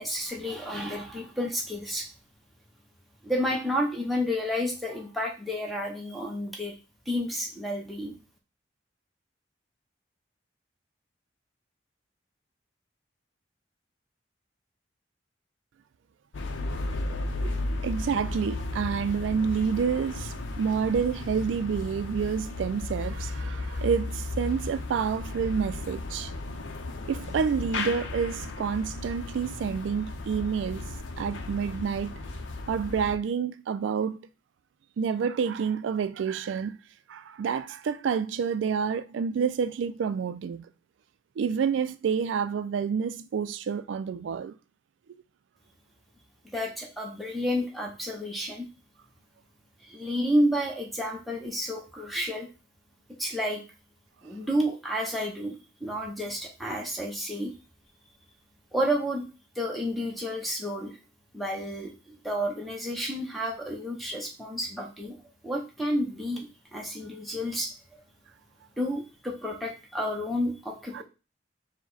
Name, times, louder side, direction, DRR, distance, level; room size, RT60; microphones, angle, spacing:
voice 1, 0.0-2.1 3.2-6.7 7.1-8.2 46.4-48.7 49.8-52.5 53.2-53.6 54.2-57.5 58.7-59.3 59.5-61.0 61.3-65.2 65.4-67.7 68.8-71.0, equal, ahead, 0.7 m, -30 dB
sound 1, 16.3-33.1, left 2 dB, 85° left, 0.6 m, -35 dB
voice 2, 17.8-26.3 27.1-30.9 31.2-32.1 32.7-34.2 35.0-36.8 37.1-40.7 41.4-44.5 70.9-71.0, right 6 dB, 75° right, 0.3 m, -28 dB
4.8 x 2.1 x 3.9 m
head